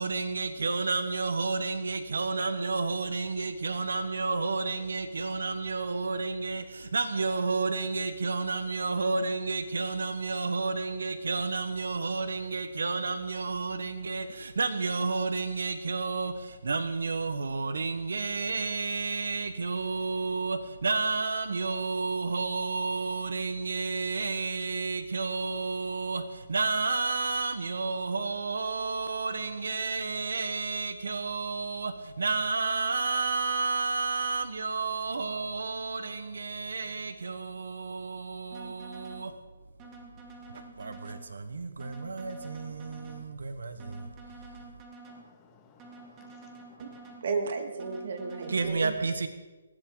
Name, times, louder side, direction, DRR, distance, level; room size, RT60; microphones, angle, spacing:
voice 1, 0.0-39.3 40.5-44.1 48.5-49.3, right 4 dB, 85° right, 10 dB, 1.3 m, -31 dB
sound 1, 38.5-39.3 39.8-41.3 41.8-43.3 43.8-45.3 45.8-47.3 47.8-48.7, right 3 dB, 20° right, 2.2 m, -49 dB
voice 2, 45.1-47.1, left 5 dB, 15° left, 3 dB, 1.8 m, -59 dB
voice 3, 47.2-48.9, right 4 dB, 55° right, 6 dB, 2.3 m, -33 dB
19.5 x 15.0 x 4.0 m, 1.2 s
hypercardioid pair, 165°, 0 cm